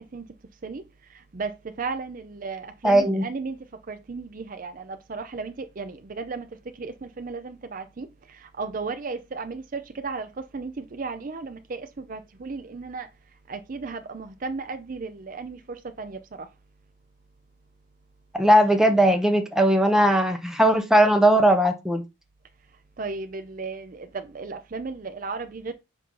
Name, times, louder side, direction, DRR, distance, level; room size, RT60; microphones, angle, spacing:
voice 1, 1.8-3.6 3.9-6.5 6.8-8.1 8.6-10.3 10.5-13.1 13.5-16.2 23.0-25.7, right 4 dB, 40° right, 0.5 m, -34 dB
voice 2, 2.8-3.2 18.3-22.0, right 1 dB, ahead, 0.8 m, -19 dB
7.5 x 2.7 x 5.4 m
head